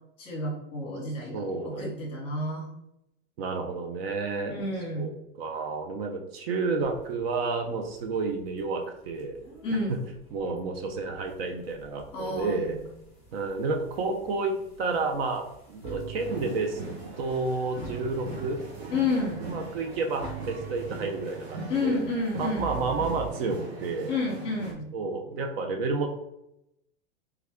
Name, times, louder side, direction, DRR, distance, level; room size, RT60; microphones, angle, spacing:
voice 1, 0.2-2.7 4.5-5.1 9.6-9.9 12.1-12.8 18.9-19.5 21.7-22.8 24.1-24.9, left 2 dB, 20° left, -3 dB, 0.9 m, -30 dB
voice 2, 1.3-1.9 3.4-4.6 5.0-5.1 5.4-9.4 9.9-10.0 10.3-12.8 13.3-16.8 17.2-18.9 19.5-22.0 22.4-24.2 24.9-26.1, right 3 dB, 70° right, 4 dB, 0.6 m, -30 dB
sound 1, 6.8-23.3, right 5 dB, 20° right, 0.9 m, -46 dB
sound 2, 16.2-24.7, right 3 dB, 85° right, 1.1 m, -41 dB
3.4 x 2.2 x 3.4 m, 0.81 s
supercardioid pair, 180°, 31 cm